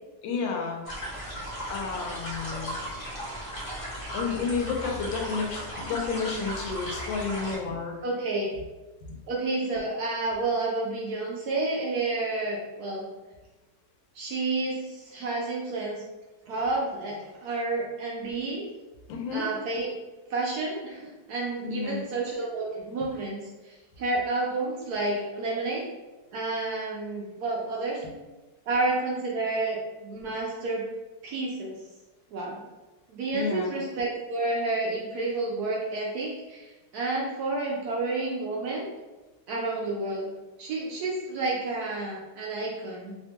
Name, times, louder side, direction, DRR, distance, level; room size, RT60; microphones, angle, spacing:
voice 1, 0.2-0.8 1.7-2.7 4.1-8.0 19.1-19.5 21.6-22.0 28.0-28.1 33.3-33.7, left 5 dB, 85° left, 1 dB, 1.3 m, -31 dB
sound 1, 0.8-7.6, equal, 35° left, 0.5 m, -36 dB
voice 2, 8.0-8.5 9.3-13.1 14.1-16.0 16.5-18.7 19.3-19.9 20.3-25.9 26.3-28.0 28.7-30.9 31.2-31.8 32.3-32.6 33.1-38.9 39.5-40.3 40.6-43.2, right 2 dB, 70° right, -3 dB, 0.9 m, -30 dB
3.3 x 2.2 x 2.8 m, 1.1 s
omnidirectional pair, 2.0 m